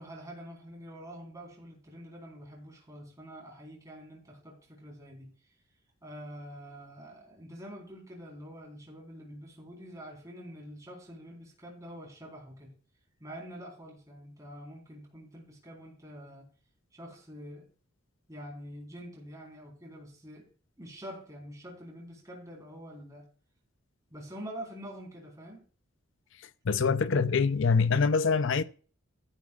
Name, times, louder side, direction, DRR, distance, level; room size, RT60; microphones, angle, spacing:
voice 1, 0.0-5.3 6.0-12.7 13.2-16.5 16.9-17.7 18.3-20.5 20.8-23.3 24.1-25.6, equal, 15° right, 3.9 m, -46 dB
voice 2, 26.7-28.6, left 5 dB, 60° left, 0.5 m, -24 dB
13.5 x 12.0 x 2.4 m
head